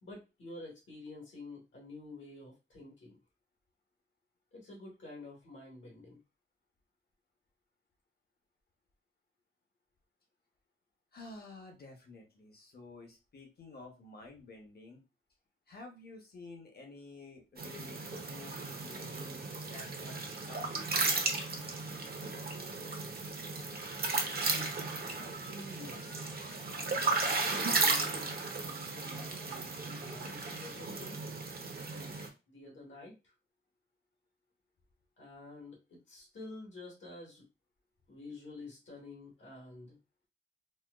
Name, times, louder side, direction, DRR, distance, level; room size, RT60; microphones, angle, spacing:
voice 1, 0.0-3.2 4.5-6.2 25.2-26.3 26.7-28.3 28.6-31.2 31.9-32.2 32.5-33.3 35.2-37.4 38.1-40.0, left 2 dB, 65° left, -2 dB, 1.5 m, -50 dB
voice 2, 11.1-15.0 15.7-21.2, left 2 dB, 50° left, 2 dB, 1.0 m, -51 dB
sound 1, 17.6-32.3, right 3 dB, 45° right, 0.7 m, -35 dB
4.2 x 2.3 x 2.3 m, 0.27 s
wide cardioid pair, 150°, 21 cm